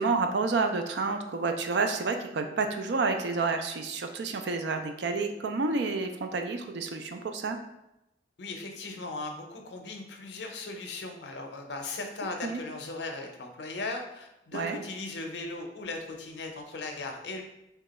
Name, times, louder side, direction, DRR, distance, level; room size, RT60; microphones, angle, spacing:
voice 1, 0.0-7.6 12.4-12.6 14.5-14.8, right 4 dB, 75° right, 6 dB, 0.4 m, -29 dB
voice 2, 8.4-17.4, left 2 dB, 75° left, 3 dB, 0.6 m, -38 dB
2.9 x 2.3 x 4.1 m, 0.90 s
head